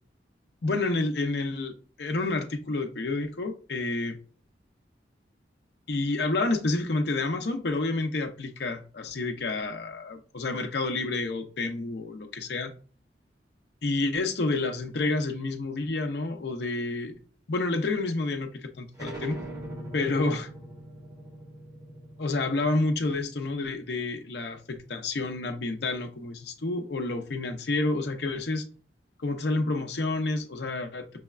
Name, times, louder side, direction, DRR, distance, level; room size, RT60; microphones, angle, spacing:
voice 1, 0.6-4.2 5.9-12.7 13.8-17.1 17.5-19.4 19.9-20.5 22.2-28.6 29.2-31.2, left 2 dB, 60° left, 0.6 m, -29 dB
sound 1, 18.9-24.2, right 1 dB, 20° right, 1.0 m, -42 dB
6.1 x 2.2 x 2.3 m
head